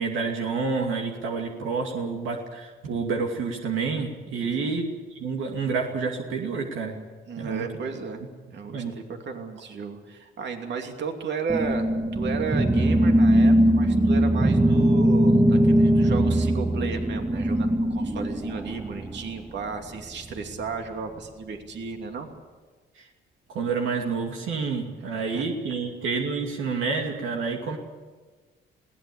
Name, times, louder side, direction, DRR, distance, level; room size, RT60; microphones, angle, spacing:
voice 1, 0.0-4.9 5.1-7.0 7.4-7.6 8.7-8.9 23.5-27.8, right 4 dB, 85° right, 2 dB, 2.5 m, -28 dB
voice 2, 4.4-4.7 7.3-8.2 8.5-22.3 25.3-25.5, right 5 dB, 60° right, 4 dB, 2.8 m, -34 dB
sound 1, 11.5-19.3, right 1 dB, 15° right, 0.9 m, -21 dB
21.0 x 17.5 x 8.6 m, 1.4 s
cardioid pair, 90°, 20 cm